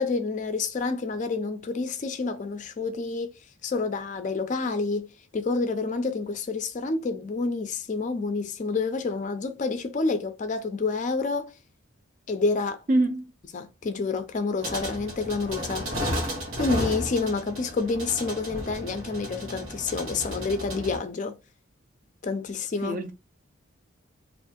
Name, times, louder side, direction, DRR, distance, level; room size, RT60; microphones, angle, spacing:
voice 1, 0.0-3.3 3.6-11.5 12.3-12.8 13.5-15.9 16.6-21.3 22.2-23.0, left 4 dB, 35° left, 0.3 m, -28 dB
voice 2, 12.9-13.2 22.8-23.1, right 1 dB, 40° right, 0.4 m, -24 dB
sound 1, 14.6-21.0, equal, 70° right, 1.2 m, -33 dB
2.6 x 2.4 x 3.5 m
head